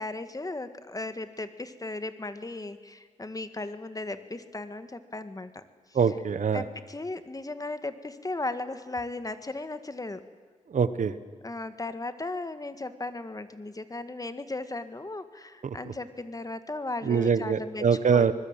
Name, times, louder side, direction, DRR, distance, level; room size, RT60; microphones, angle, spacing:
voice 1, 0.0-5.6 6.5-10.2 11.4-17.8 18.1-18.3, left 2 dB, 30° left, 10 dB, 1.8 m, -36 dB
voice 2, 5.9-6.6 10.7-11.1 15.6-15.7 17.0-18.3, right 6 dB, 75° right, 13 dB, 1.3 m, -24 dB
24.5 x 20.5 x 9.0 m, 1.5 s
cardioid pair, 70°, 13 cm